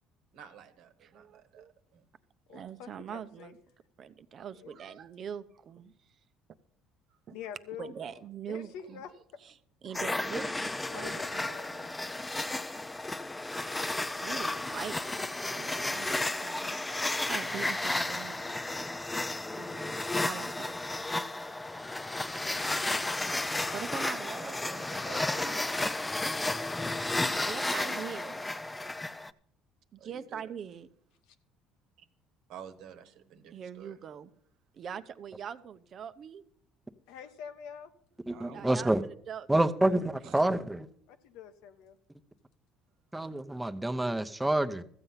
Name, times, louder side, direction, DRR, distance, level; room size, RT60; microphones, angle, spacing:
voice 1, 0.3-2.0 2.5-2.6 7.1-7.2 24.1-25.5 27.0-28.3 30.0-30.5 32.0-32.1 32.5-34.0 38.2-38.9 40.2-40.5, right 7 dB, 70° right, 9 dB, 1.2 m, -50 dB
voice 2, 1.0-1.7 2.5-3.6 4.0-5.9 7.3-7.4 7.8-9.0 9.4-9.5 9.8-11.9 14.1-18.5 19.5-20.7 23.7-24.9 25.3-25.7 27.4-28.4 29.9-30.9 33.5-34.3 34.7-36.4 38.5-38.9 39.3-40.2, right 8 dB, 50° right, 12 dB, 0.7 m, -43 dB
voice 3, 2.5-3.5 4.5-5.1 7.3-8.2 8.5-9.1 10.9-11.9 37.1-37.9 41.1-42.0, left 8 dB, 80° left, 9 dB, 1.1 m, -46 dB
sound 1, 9.9-29.3, left 2 dB, 15° left, 0.6 m, -33 dB
voice 4, 38.3-39.0 39.5-40.9 43.1-44.8, right 1 dB, 10° right, 8 dB, 0.9 m, -28 dB
14.0 x 7.9 x 5.7 m, 0.63 s
supercardioid pair, 90°, 0 cm